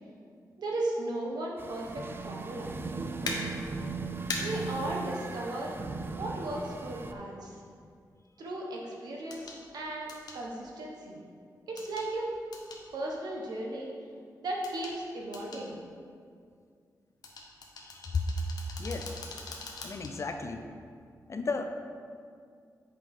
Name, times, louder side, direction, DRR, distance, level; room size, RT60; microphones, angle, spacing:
voice 1, 0.6-2.8 4.4-5.7 6.1-7.6 8.4-10.1 10.3-11.2 11.7-12.3 12.9-13.9 14.4-15.7, right 1 dB, 90° right, -2 dB, 1.2 m, -36 dB
sound 1, 1.6-7.1, right 4 dB, 35° right, 0.4 m, -38 dB
sound 2, 3.3-3.4 4.3-4.4 6.4-6.5 9.3-9.6 10.1-10.4 11.8-12.1 12.5-12.8 14.6-15.0 15.3-15.6 17.2-20.1 20.6-20.7, left 3 dB, 80° left, 1.0 m, -40 dB
voice 2, 17.8-18.2 18.8-19.2 19.8-20.6 21.3-21.6, left 4 dB, 45° left, 6 dB, 0.6 m, -33 dB
7.7 x 5.6 x 3.7 m, 2.2 s
wide cardioid pair, 105°, 7 cm